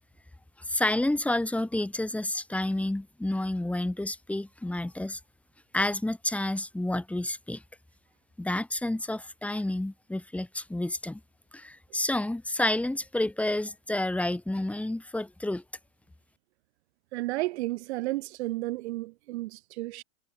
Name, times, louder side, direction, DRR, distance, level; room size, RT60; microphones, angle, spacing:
voice 1, 0.6-5.2 5.7-7.6 8.4-11.2 11.5-15.6, left 1 dB, 5° left, 6.4 m, -30 dB
voice 2, 17.1-20.0, right 19 dB, 60° right, 6.5 m, -32 dB
hypercardioid pair, 135°, 38 cm